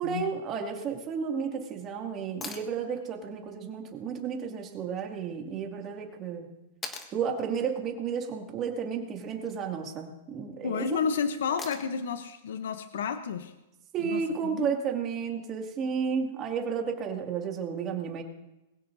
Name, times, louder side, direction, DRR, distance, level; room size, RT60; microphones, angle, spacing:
voice 1, 0.0-6.5 7.1-11.0 13.9-18.2, right 6 dB, 30° right, 2 dB, 2.3 m, -32 dB
sound 1, 2.4-2.7 5.0-5.1 6.8-7.2 9.2-9.6 11.6-12.1 14.2-14.3, left 4 dB, 15° left, 1.5 m, -41 dB
voice 2, 10.6-13.5 14.0-14.7, left 6 dB, 80° left, 9 dB, 0.8 m, -31 dB
22.0 x 16.0 x 2.7 m, 0.98 s
hypercardioid pair, 145°, 0 cm